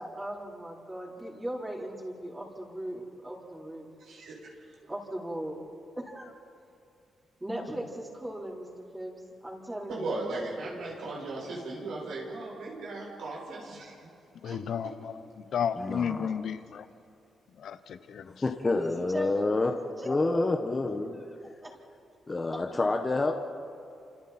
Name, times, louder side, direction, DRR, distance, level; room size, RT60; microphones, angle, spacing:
voice 1, 0.0-3.9 4.9-5.6 6.0-6.3 7.4-10.2 10.6-10.7 18.7-19.5 20.0-20.5 21.6-21.7, right 1 dB, 15° right, -5 dB, 4.4 m, -38 dB
voice 2, 4.0-4.8 9.9-14.1 14.4-14.6, right 2 dB, 80° right, -3 dB, 7.3 m, -37 dB
voice 3, 14.3-16.9 17.6-18.3, left 7 dB, 70° left, 11 dB, 1.1 m, -33 dB
voice 4, 15.8-16.3 18.4-19.7 20.0-21.2 22.3-23.3, left 3 dB, 25° left, 3 dB, 1.4 m, -28 dB
29.0 x 28.0 x 4.5 m, 2.5 s
cardioid pair, 100°, 0 cm